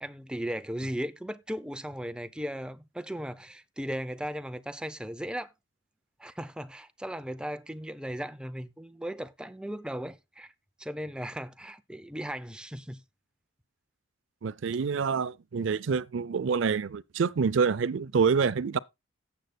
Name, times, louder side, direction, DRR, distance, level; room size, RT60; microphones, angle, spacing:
voice 1, 0.0-5.5 6.2-10.5 10.8-13.0, equal, 5° right, 0.5 m, -37 dB
voice 2, 14.4-18.8, right 5 dB, 65° right, 0.4 m, -27 dB
17.0 x 7.8 x 2.2 m
head